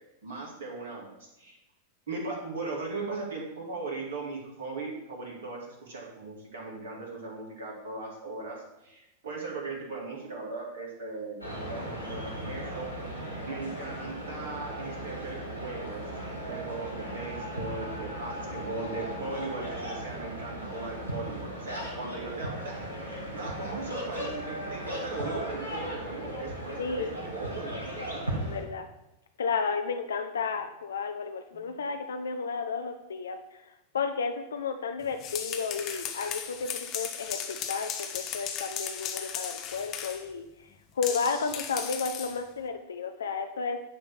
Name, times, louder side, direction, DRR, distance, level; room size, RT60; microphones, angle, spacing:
voice 1, 0.2-1.6 2.1-16.1 16.4-22.8 23.0-28.4 31.5-31.7, right 3 dB, 60° right, -1 dB, 2.4 m, -38 dB
sound 1, 11.4-28.6, right 1 dB, 80° right, 2.5 m, -37 dB
voice 2, 26.8-27.1 28.4-28.9 29.4-43.8, left 5 dB, 65° left, 6 dB, 0.5 m, -33 dB
sound 2, 35.0-40.3 41.0-42.4, left 8 dB, 35° left, 1.0 m, -36 dB
10.0 x 3.4 x 6.2 m, 0.90 s
figure-of-eight pair, 90°, 0 cm